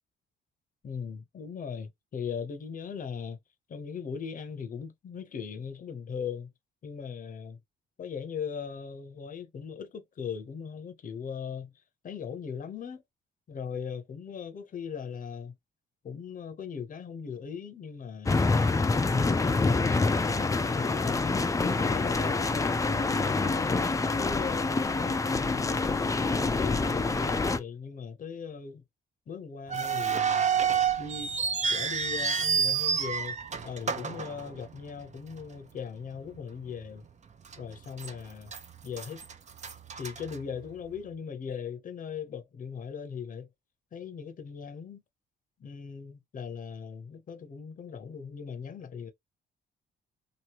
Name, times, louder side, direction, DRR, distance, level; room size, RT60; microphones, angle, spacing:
voice 1, 0.8-3.4 3.7-6.5 6.8-7.6 8.0-11.7 12.0-13.0 13.5-15.5 16.0-18.4 19.0-21.3 21.8-23.8 24.2-26.0 26.5-28.8 29.3-30.5 31.0-31.3 31.7-33.4 33.6-37.0 37.6-38.5 38.8-39.2 39.9-43.5 43.9-45.0 45.6-49.1, left 6 dB, 45° left, 0.8 m, -39 dB
sound 1, 18.3-27.6, left 3 dB, 15° left, 0.4 m, -26 dB
sound 2, 29.7-35.0 35.3-35.4 36.1-36.4 36.8-36.9 37.5-38.1 38.5-40.9, right 6 dB, 35° right, 0.6 m, -29 dB
2.9 x 2.7 x 3.0 m
cardioid pair, 90°, 20 cm